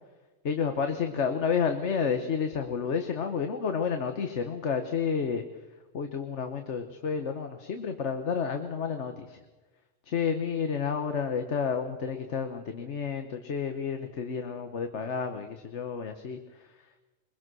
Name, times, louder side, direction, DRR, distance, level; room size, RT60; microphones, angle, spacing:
voice 1, 0.4-5.4 5.9-9.4 10.0-16.9, left 6 dB, 65° left, 6 dB, 1.4 m, -30 dB
23.0 x 21.5 x 6.3 m, 1.2 s
omnidirectional pair, 1.3 m